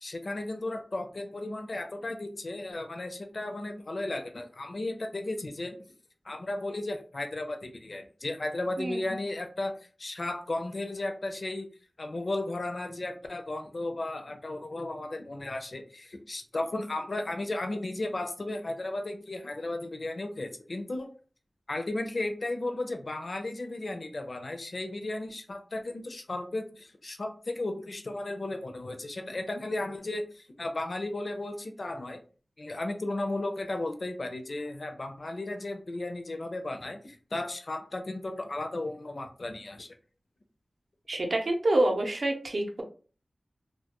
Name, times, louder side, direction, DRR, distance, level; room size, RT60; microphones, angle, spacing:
voice 1, 0.0-5.8 6.2-11.7 12.0-21.1 21.7-32.2 32.6-40.0, left 2 dB, 55° left, 5 dB, 0.5 m, -35 dB
voice 2, 41.1-42.8, right 1 dB, 65° right, 3 dB, 0.6 m, -27 dB
2.2 x 2.1 x 2.9 m, 0.38 s
wide cardioid pair, 50°, 0 cm